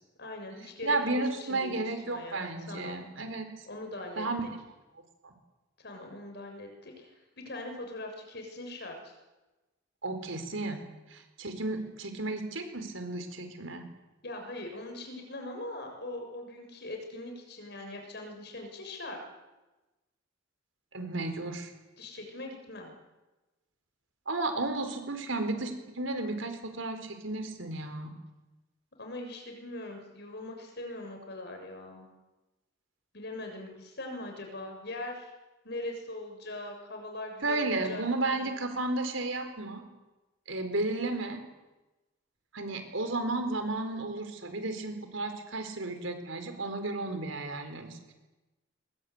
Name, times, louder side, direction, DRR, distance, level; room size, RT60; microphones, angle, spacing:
voice 1, 0.2-1.8 2.0-3.0 3.7-4.3 5.8-9.1 14.2-19.2 22.0-22.9 29.0-32.1 33.1-35.3 35.6-38.0 38.3-38.5, left 2 dB, 55° left, 3 dB, 6.8 m, -41 dB
voice 2, 0.8-3.5 4.2-4.4 5.2-5.3 10.0-10.8 11.1-13.9 20.9-21.7 24.3-28.1 37.4-39.8 40.5-41.4 42.5-48.0, right 2 dB, 80° right, 7 dB, 4.4 m, -33 dB
22.5 x 21.0 x 9.7 m, 1.1 s
head